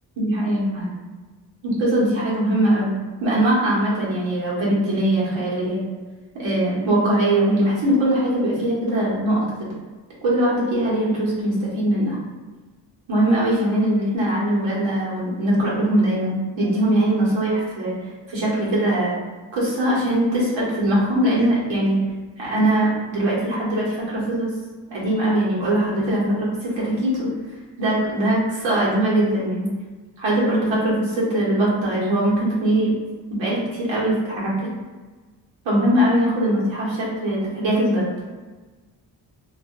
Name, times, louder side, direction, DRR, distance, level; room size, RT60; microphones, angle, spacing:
voice 1, 0.2-0.9 1.6-5.8 6.3-9.7 10.2-12.2 13.1-18.0 18.3-19.2 19.5-22.0 22.4-24.5 24.9-27.3 27.8-29.7 30.2-32.9 33.3-34.7 35.6-38.1, right 1 dB, 90° right, -6 dB, 1.0 m, -21 dB
2.5 x 2.0 x 3.5 m, 1.3 s
supercardioid pair, 40°, 45 cm